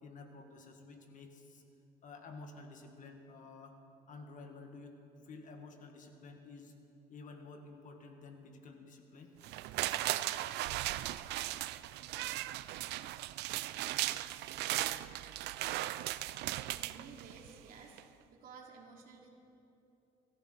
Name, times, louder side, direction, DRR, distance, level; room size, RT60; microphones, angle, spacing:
voice 1, 0.0-1.6 2.0-3.8 4.1-5.0 5.2-6.7 7.1-9.7, left 3 dB, 50° left, 4 dB, 1.8 m, -51 dB
sound 1, 9.4-17.6 18.0-18.1, right 15 dB, 80° right, 0.4 m, -37 dB
voice 2, 16.4-18.0 18.3-19.3, right 5 dB, 55° right, -1 dB, 2.8 m, -54 dB
23.5 x 14.0 x 4.0 m, 2.8 s
cardioid pair, 110°, 17 cm